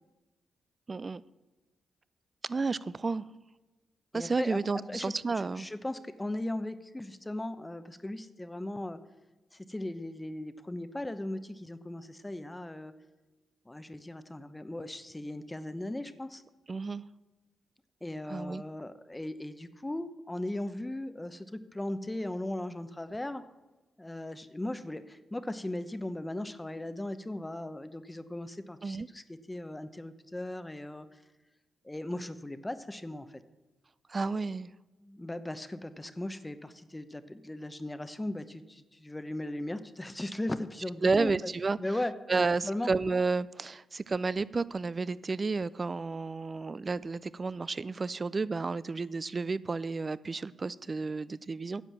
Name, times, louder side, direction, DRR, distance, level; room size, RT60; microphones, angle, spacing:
voice 1, 0.9-1.2 2.4-3.2 4.1-5.7 16.7-17.0 18.3-18.6 28.8-29.1 34.1-34.7 41.0-41.8 42.3-51.8, right 4 dB, 40° right, 19 dB, 0.4 m, -31 dB
voice 2, 4.1-9.0 9.5-12.9 13.7-16.4 18.0-23.4 24.0-31.2 31.8-33.4 35.0-41.5 41.8-42.9, left 1 dB, 15° left, 12 dB, 0.8 m, -38 dB
10.0 x 7.7 x 7.4 m, 1.1 s
cardioid pair, 60°, 0 cm